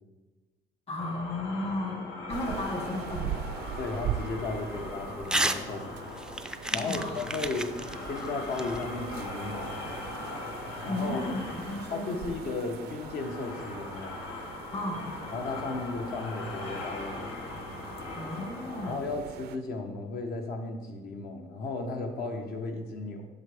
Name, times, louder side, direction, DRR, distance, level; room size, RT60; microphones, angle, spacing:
voice 1, 0.9-2.0 2.3-3.4 6.7-7.2 10.9-12.2 14.7-15.2 18.1-19.0, left 2 dB, 35° left, 0 dB, 1.6 m, -34 dB
sound 1, 1.0-19.0, left 3 dB, 85° left, 1.3 m, -40 dB
sound 2, 2.3-19.6, right 10 dB, 70° right, 0.4 m, -42 dB
voice 2, 3.8-5.9 6.7-7.7 8.0-9.8 10.8-11.4 11.9-14.2 15.3-17.3 18.9-23.3, left 3 dB, 65° left, 3 dB, 1.2 m, -35 dB
Crumpling crinkling / Tearing, 5.2-5.6 6.0-9.3, right 1 dB, 5° right, 0.4 m, -32 dB
8.0 x 6.8 x 3.6 m, 1.2 s
cardioid pair, 110°, 17 cm